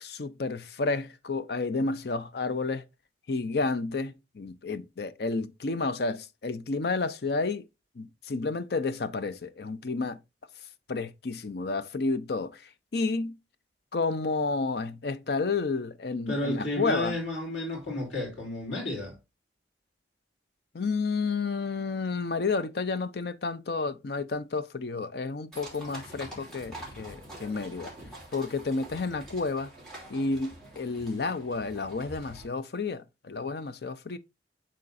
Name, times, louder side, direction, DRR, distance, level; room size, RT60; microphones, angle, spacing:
voice 1, 0.0-2.8 3.3-7.6 8.0-10.2 10.9-13.4 13.9-17.2 20.7-27.9 28.3-29.7 30.1-34.2, left 3 dB, 55° left, 0.5 m, -31 dB
voice 2, 16.3-19.2, left 1 dB, 85° left, 3.4 m, -32 dB
Horse carriage in Vienna, 25.5-32.4, right 1 dB, 5° left, 2.6 m, -46 dB
10.5 x 3.8 x 2.5 m
head